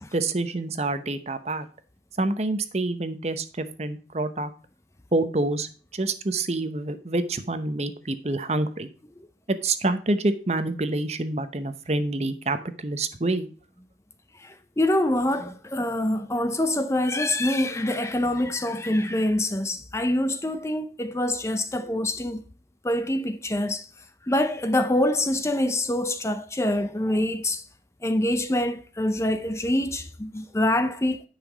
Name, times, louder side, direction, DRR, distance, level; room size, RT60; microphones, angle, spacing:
voice 1, 0.1-1.7 2.2-4.5 5.1-8.9 9.5-13.5, right 2 dB, 35° right, 0.8 m, -27 dB
voice 2, 14.3-22.4 22.8-27.7 28.0-31.2, left 1 dB, 15° left, 0.5 m, -25 dB
10.0 x 5.9 x 4.9 m
head